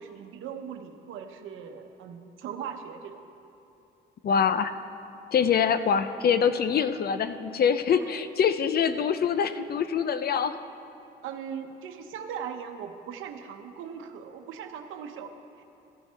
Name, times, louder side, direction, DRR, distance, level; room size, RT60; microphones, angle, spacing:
voice 1, 0.0-3.2 8.0-8.2 11.2-15.3 15.6-15.7, right 7 dB, 85° right, 6 dB, 0.9 m, -39 dB
voice 2, 4.2-4.8 5.3-10.6, left 7 dB, 50° left, 11 dB, 0.6 m, -24 dB
14.5 x 11.5 x 3.4 m, 2.9 s
cardioid pair, 90°, 20 cm